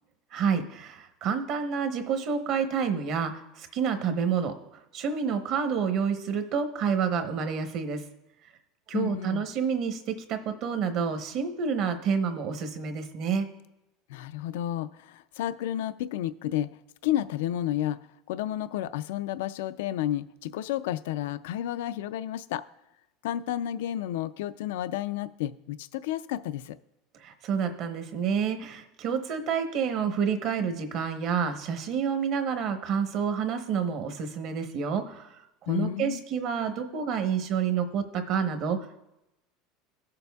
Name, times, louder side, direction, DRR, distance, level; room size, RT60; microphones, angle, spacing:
voice 1, 0.3-4.6 4.9-8.0 8.9-13.5 27.2-35.4 35.7-39.0, right 6 dB, 50° right, 7 dB, 0.9 m, -29 dB
voice 2, 8.9-9.5 14.1-16.7 17.0-18.0 18.3-22.7 23.2-26.8 35.7-36.2, left 12 dB, 85° left, 13 dB, 0.3 m, -31 dB
16.0 x 6.7 x 2.3 m, 0.91 s
supercardioid pair, 145°, 0 cm